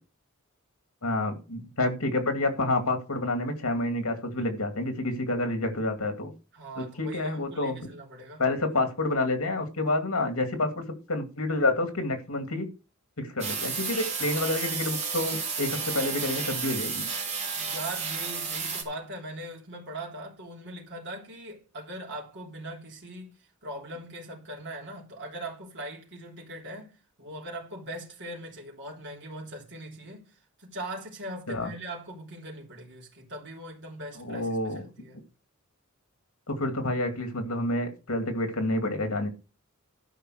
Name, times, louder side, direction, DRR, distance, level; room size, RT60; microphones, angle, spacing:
voice 1, 1.0-6.3 6.8-7.9 8.4-12.7 13.2-17.1 31.5-31.7 34.2-34.8 36.5-39.3, left 2 dB, 80° left, 2.4 m, -28 dB
voice 2, 6.5-8.4 17.5-23.3 23.6-26.9 27.2-35.2, right 1 dB, 55° right, 3.5 m, -40 dB
sound 1, 13.4-18.8, right 5 dB, 30° right, 3.0 m, -32 dB
12.0 x 5.6 x 6.4 m
head